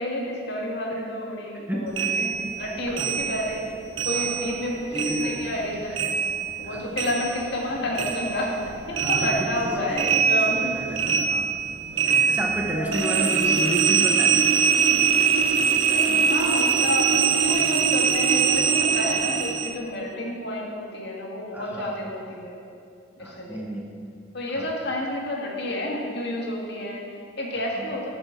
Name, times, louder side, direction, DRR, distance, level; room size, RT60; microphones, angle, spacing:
voice 1, 0.0-3.6 4.0-6.1 6.6-8.6 8.9-10.6 12.1-12.3 12.6-13.7 15.9-22.6 23.2-23.7 24.3-28.1, left 1 dB, 60° left, -2 dB, 2.0 m, -30 dB
voice 2, 1.7-2.2 2.4-2.5 3.0-3.1 4.1-4.6 4.9-5.4 6.6-6.9 8.9-11.5 12.3-14.4 21.5-22.1 23.2-23.9 24.6-24.7, right 1 dB, 10° right, -1 dB, 0.9 m, -31 dB
sound 1, 2.0-4.7 4.9-7.7 7.9-19.7, right 6 dB, 85° right, 0.8 m, -23 dB
12.5 x 6.8 x 5.9 m, 2.4 s
head